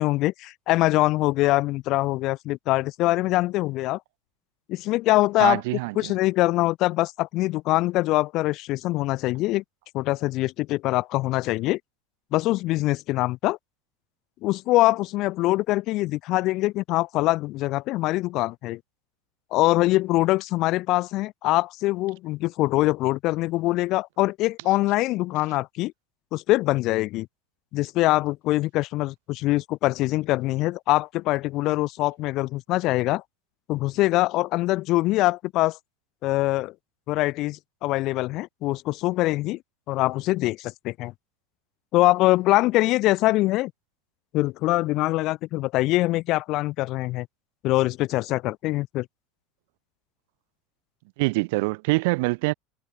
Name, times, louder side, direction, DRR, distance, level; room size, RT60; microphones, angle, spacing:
voice 1, 0.0-4.0 4.7-5.6 6.0-9.6 9.9-11.8 12.3-13.6 14.4-18.8 19.5-25.9 26.3-27.3 27.7-33.2 33.7-35.8 36.2-36.7 37.1-39.6 39.9-41.1 41.9-43.7 44.3-47.3 47.6-49.1, left 18 dB, 40° left, 0.3 m, -23 dB
voice 2, 5.4-6.1 51.2-52.5, right 26 dB, 65° right, 1.5 m, -24 dB
supercardioid pair, 160°, 0 cm